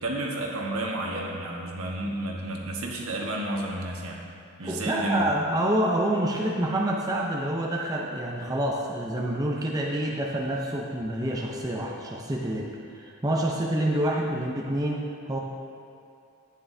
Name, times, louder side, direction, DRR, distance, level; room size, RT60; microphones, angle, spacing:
voice 1, 0.0-4.2 4.6-5.3, right 1 dB, 70° right, -1 dB, 1.4 m, -31 dB
voice 2, 4.6-15.4, right 1 dB, 15° right, -2 dB, 0.6 m, -27 dB
12.0 x 9.4 x 2.7 m, 2.5 s
head